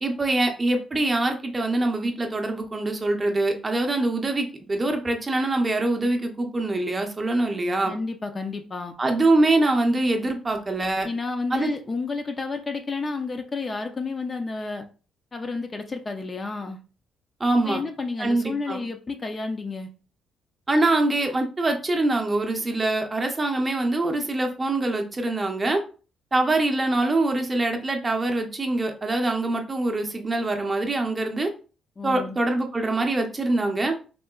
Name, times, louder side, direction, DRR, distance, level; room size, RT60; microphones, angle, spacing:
voice 1, 0.0-7.9 9.0-11.1 11.5-11.7 17.4-17.8 18.2-18.8 20.7-25.8 26.3-31.5 32.0-33.9, right 2 dB, 25° right, 4 dB, 0.6 m, -24 dB
voice 2, 7.8-9.0 11.0-14.9 15.3-16.8 17.6-19.9 32.0-32.4, left 3 dB, 30° left, 5 dB, 0.4 m, -31 dB
3.6 x 2.1 x 2.3 m, 0.36 s
cardioid pair, 90°, 0 cm